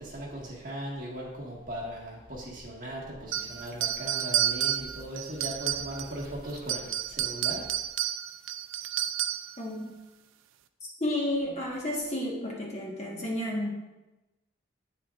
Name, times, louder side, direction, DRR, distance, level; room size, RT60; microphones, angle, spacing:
voice 1, 0.0-7.8, right 1 dB, 45° right, -3 dB, 1.7 m, -38 dB
sound 1, 3.3-6.2 6.6-9.6, right 11 dB, 80° right, 0.4 m, -30 dB
voice 2, 9.6-9.9 10.8-13.7, left 1 dB, 35° left, -3 dB, 1.3 m, -32 dB
8.9 x 7.3 x 2.5 m, 1.0 s
head